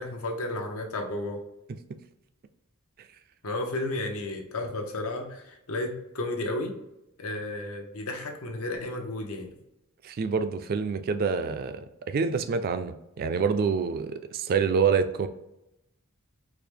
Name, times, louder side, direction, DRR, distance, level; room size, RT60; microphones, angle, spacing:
voice 1, 0.0-1.4 3.4-6.7 7.2-9.5, left 2 dB, 90° left, 3 dB, 0.7 m, -33 dB
voice 2, 10.0-15.3, right 5 dB, 45° right, 10 dB, 0.3 m, -27 dB
4.6 x 2.1 x 3.3 m, 0.88 s
head